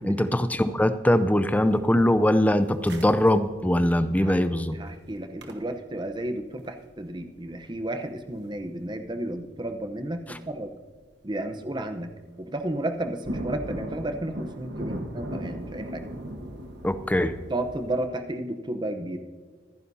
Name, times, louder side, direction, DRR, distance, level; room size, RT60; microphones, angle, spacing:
voice 1, 0.0-4.8 16.8-17.3, left 1 dB, 10° left, 11 dB, 0.5 m, -22 dB
sound 1, 1.3-9.4 9.6-9.7 10.4-10.7 11.1-11.5 11.8-11.9 12.2-18.1, right 1 dB, 60° right, 1.3 m, -39 dB
voice 2, 4.7-10.7 11.2-16.1 17.5-19.2, right 1 dB, 25° right, 7 dB, 0.8 m, -32 dB
25.5 x 10.0 x 2.7 m, 1.5 s
head